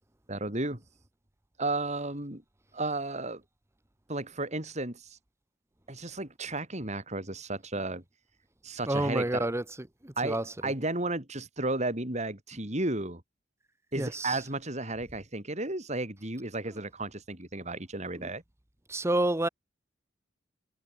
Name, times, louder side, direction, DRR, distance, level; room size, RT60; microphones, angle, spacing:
voice 1, 0.3-0.8 1.6-2.4 2.7-3.4 4.1-5.2 5.9-8.0 8.6-9.6 10.2-13.2 13.9-18.4, right 2 dB, 35° right, 4.6 m, -33 dB
voice 2, 8.9-9.6 10.0-10.4 14.0-14.4 18.2-18.3 18.9-19.5, right 1 dB, 15° right, 1.0 m, -29 dB
head